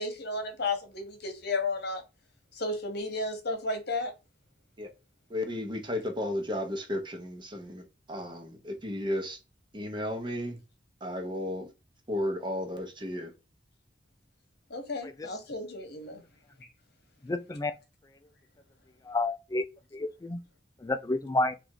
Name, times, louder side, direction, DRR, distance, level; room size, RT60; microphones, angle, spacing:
voice 1, 0.0-2.0 2.5-4.1 14.7-16.2 16.6-16.7, left 2 dB, 60° left, 1.1 m, -33 dB
voice 2, 5.3-9.4 9.7-10.6 11.0-11.7 12.1-13.3, left 1 dB, 25° right, 0.9 m, -34 dB
voice 3, 17.2-17.7 19.0-19.6 19.9-20.4 20.8-21.5, left 2 dB, 20° left, 0.3 m, -30 dB
3.4 x 2.5 x 4.5 m
head